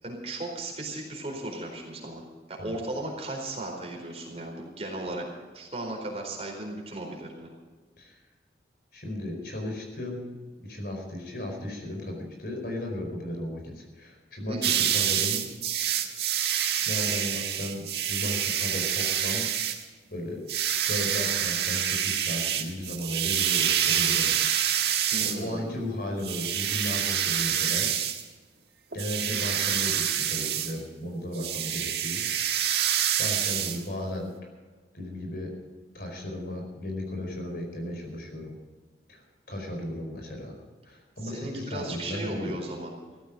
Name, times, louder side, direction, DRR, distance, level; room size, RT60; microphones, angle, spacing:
voice 1, 0.0-5.3 5.5-7.5 14.5-14.8 25.1-25.8 41.2-42.9, right 1 dB, 35° right, 0 dB, 4.4 m, -36 dB
voice 2, 8.9-10.3 10.6-15.5 16.0-16.2 16.9-19.5 20.1-20.4 20.9-24.4 24.7-27.9 28.9-32.2 32.6-34.3 34.9-35.5 35.9-38.6 39.1-40.6 40.8-42.6, left 1 dB, 55° left, 3 dB, 4.8 m, -35 dB
sound 1, 14.6-19.8 20.5-25.4 26.2-28.2 28.9-30.7 31.3-33.8, right 9 dB, 70° right, 1.6 m, -27 dB
16.0 x 14.5 x 5.2 m, 1.4 s
head